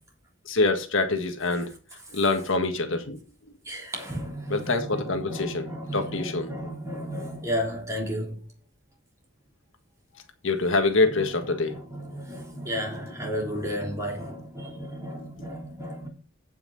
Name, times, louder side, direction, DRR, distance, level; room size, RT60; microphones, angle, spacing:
voice 1, 0.4-1.7 2.1-3.2 4.5-5.7 5.9-6.5 10.4-11.7, left 3 dB, 70° left, 1.6 m, -25 dB
voice 2, 3.6-8.5 11.0-16.1, equal, 15° right, 3.5 m, -33 dB
15.5 x 5.8 x 4.1 m
head